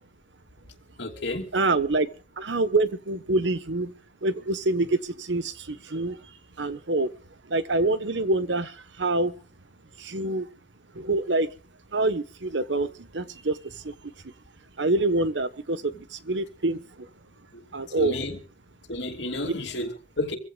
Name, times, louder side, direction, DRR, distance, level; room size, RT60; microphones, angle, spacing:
voice 1, 1.0-1.5 5.9-6.1 17.5-17.6 18.0-18.4 18.9-20.4, left 2 dB, 75° left, 2.8 m, -31 dB
voice 2, 1.5-2.1 2.4-3.9 4.2-6.2 6.6-7.1 7.5-9.3 10.0-10.5 10.9-11.5 11.9-13.6 13.8-13.9 14.8-16.8 17.7-18.1, right 2 dB, 85° right, 1.3 m, -26 dB
26.5 x 15.5 x 2.4 m
head